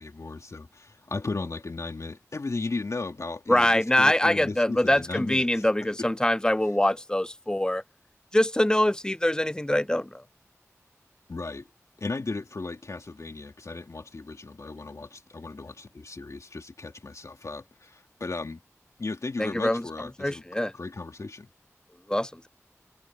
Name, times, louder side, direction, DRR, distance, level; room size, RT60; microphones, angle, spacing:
voice 1, 0.0-6.1 11.3-11.7 12.0-18.6 19.0-20.5 20.7-21.5, left 3 dB, 70° left, 2.6 m, -36 dB
voice 2, 3.5-7.8 8.3-10.1 19.4-19.8 20.2-20.7 22.1-22.5, left 1 dB, 15° left, 0.5 m, -24 dB
wide cardioid pair, 50°, 6 cm